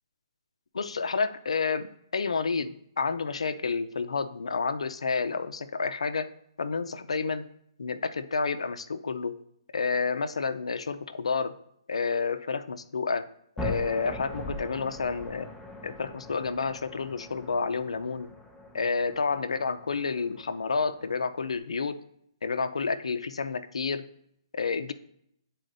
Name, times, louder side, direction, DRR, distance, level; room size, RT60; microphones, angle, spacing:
voice 1, 0.7-6.3 6.6-7.4 7.8-9.4 9.7-11.5 11.9-13.3 13.6-15.5 15.8-18.3 18.7-22.0 22.4-24.0 24.5-24.9, left 4 dB, 90° left, 11 dB, 0.5 m, -30 dB
sound 1, 13.6-21.6, equal, ahead, 0.4 m, -41 dB
10.5 x 4.1 x 2.6 m, 0.71 s
hypercardioid pair, 160°, 3 cm